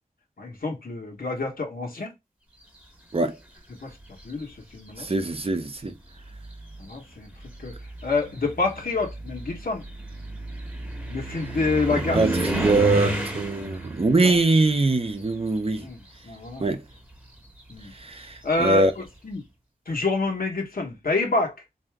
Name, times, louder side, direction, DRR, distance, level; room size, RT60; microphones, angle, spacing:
voice 1, 0.4-2.1 3.7-3.9 4.2-5.1 6.8-7.3 7.6-7.7 8.0-9.8 11.1-12.4 14.2-14.4 15.8-16.7 17.7-17.9 18.4-19.4 19.9-21.5, left 3 dB, 80° left, 1.2 m, -28 dB
sound 1, 3.9-4.5 5.4-5.5 6.1-16.0 16.3-18.9, right 1 dB, 10° right, 0.9 m, -32 dB
voice 2, 5.0-5.9 12.1-15.9 16.6-16.8 17.9-18.9, right 2 dB, 40° right, 0.6 m, -23 dB
3.7 x 2.7 x 3.4 m
wide cardioid pair, 75°, 15 cm